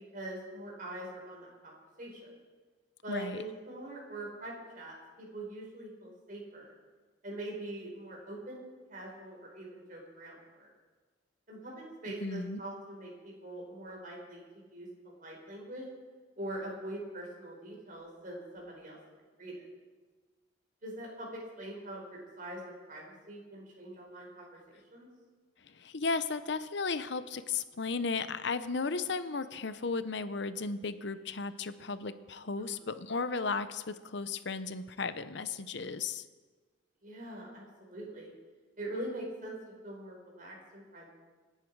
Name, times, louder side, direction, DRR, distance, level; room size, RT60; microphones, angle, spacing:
voice 1, 0.1-1.7 2.0-2.3 3.0-6.7 7.2-10.7 11.5-15.8 16.3-19.0 19.4-19.6 20.8-25.1 32.5-32.7 37.0-38.3 38.8-39.5 39.8-41.1, right 1 dB, 45° right, -2 dB, 4.9 m, -43 dB
voice 2, 3.1-3.4 12.2-12.6 25.6-36.2, left 4 dB, 60° left, 12 dB, 0.8 m, -35 dB
26.5 x 10.0 x 4.7 m, 1.4 s
head